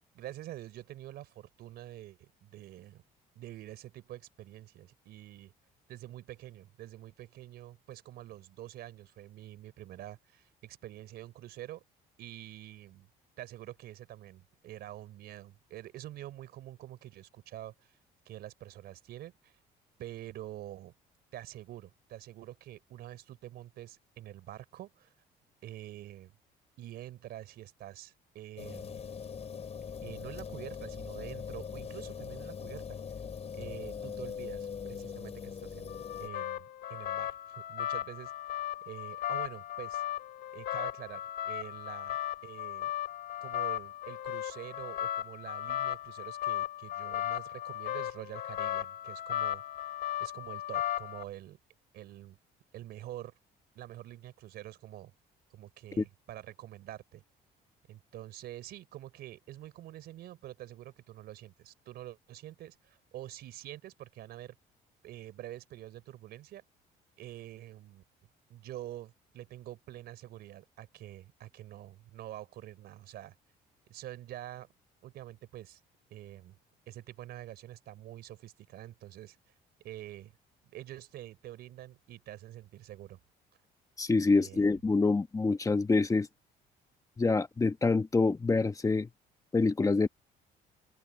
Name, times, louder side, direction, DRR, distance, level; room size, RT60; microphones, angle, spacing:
voice 1, 0.1-3.0 3.4-5.5 5.9-11.8 12.2-13.1 13.4-17.9 18.3-19.6 20.0-20.9 21.3-25.1 25.6-26.3 26.8-29.0 30.0-33.0 33.5-38.3 38.8-40.0 40.5-42.2 42.4-42.9 43.4-49.9 50.2-51.6 51.9-52.4 52.7-53.3 53.8-55.1 55.5-57.2 57.9-64.6 65.0-66.6 67.2-68.0 68.5-73.4 73.9-74.7 75.0-75.8 76.1-76.6 76.9-79.4 79.8-80.4 80.7-83.2 84.3-84.7, right 13 dB, 70° right, 3.6 m, -46 dB
sound 1, 28.6-36.3, left 6 dB, 40° left, 5.6 m, -41 dB
sound 2, 35.9-51.2, left 12 dB, 65° left, 2.2 m, -36 dB
voice 2, 84.0-86.3 87.2-89.1 89.5-90.1, left 3 dB, 20° left, 1.2 m, -26 dB
open air
cardioid pair, 110°, 17 cm